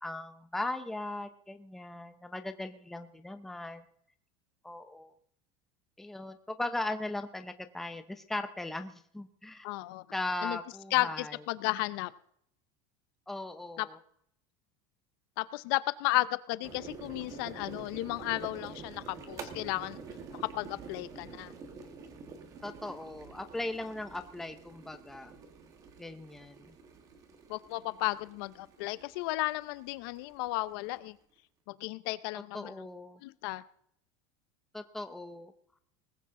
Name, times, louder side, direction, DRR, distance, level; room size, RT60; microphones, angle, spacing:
voice 1, 0.0-3.9 4.6-5.1 6.0-9.7 10.1-11.4 13.3-14.0 22.6-25.4 26.0-26.7 32.5-33.2 34.7-35.5, left 2 dB, ahead, 8 dB, 0.6 m, -38 dB
voice 2, 9.6-10.0 10.4-10.6 10.9-12.1 13.8-13.9 15.4-20.0 20.4-21.5 27.5-31.2 31.7-32.7 33.2-33.6, left 19 dB, 60° left, 16 dB, 0.6 m, -33 dB
sound 1, 16.6-31.1, right 5 dB, 25° right, 1.6 m, -48 dB
19.5 x 15.0 x 3.7 m, 0.69 s
cardioid pair, 180°, 13 cm